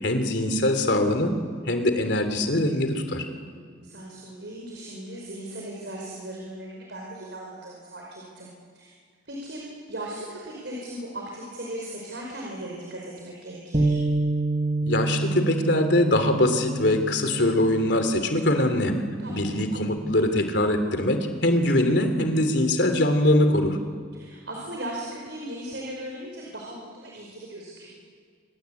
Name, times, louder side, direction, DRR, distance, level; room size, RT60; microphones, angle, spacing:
voice 1, 0.0-1.3 1.7-3.3 14.8-19.0 19.3-23.8, left 1 dB, 70° left, 7 dB, 3.1 m, -22 dB
voice 2, 3.4-8.5 8.7-8.9 9.3-9.6 9.9-14.0 19.2-19.6 24.1-27.9, right 1 dB, 70° right, -2 dB, 5.3 m, -38 dB
Bass guitar, 13.7-20.0, right 2 dB, 30° right, 1.7 m, -29 dB
27.0 x 22.5 x 8.5 m, 2.1 s
head